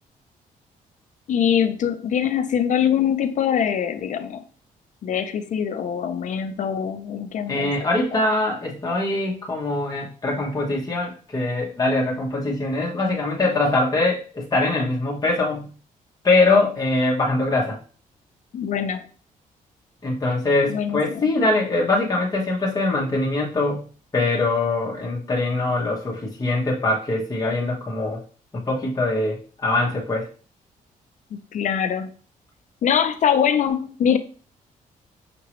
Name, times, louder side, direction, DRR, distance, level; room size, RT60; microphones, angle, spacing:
voice 1, 1.3-4.4 5.0-7.7 8.1-8.2 18.5-19.0 20.7-21.3 31.3-32.1 32.8-34.2, left 8 dB, 60° left, 10 dB, 0.5 m, -23 dB
voice 2, 7.5-15.7 16.2-17.8 20.0-23.9 24.1-28.2 28.5-30.2, left 2 dB, 25° left, -3 dB, 1.2 m, -23 dB
6.0 x 2.8 x 3.1 m, 0.40 s
cardioid pair, 115°, 14 cm